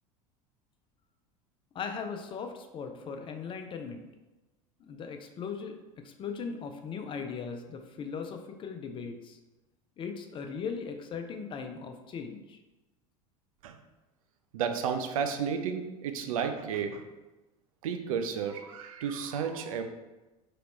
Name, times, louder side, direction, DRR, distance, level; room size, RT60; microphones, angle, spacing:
voice 1, 1.7-4.0 4.9-5.7 6.0-9.4 10.0-12.6, left 5 dB, 30° left, 5 dB, 0.4 m, -38 dB
voice 2, 14.5-17.0 17.8-19.8, right 7 dB, 70° right, 6 dB, 0.4 m, -32 dB
3.0 x 2.9 x 3.0 m, 1.1 s
hypercardioid pair, 80°, 18 cm